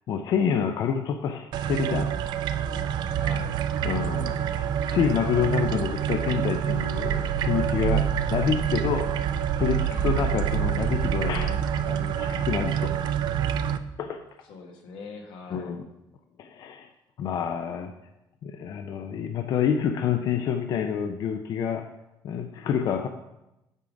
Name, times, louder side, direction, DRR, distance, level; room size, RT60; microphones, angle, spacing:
voice 1, 0.1-2.1 3.8-9.1 9.6-13.1 14.0-14.2 15.5-15.9 16.4-16.9 17.2-17.9 18.4-21.9 22.2-23.1, left 7 dB, 55° left, 7 dB, 0.4 m, -28 dB
sound 1, 1.5-13.8, right 9 dB, 60° right, 0.4 m, -27 dB
voice 2, 3.1-3.6 9.9-10.3 14.5-15.7, left 3 dB, 90° left, 2 dB, 1.5 m, -42 dB
9.0 x 3.8 x 5.0 m, 0.91 s
cardioid pair, 155°, 8 cm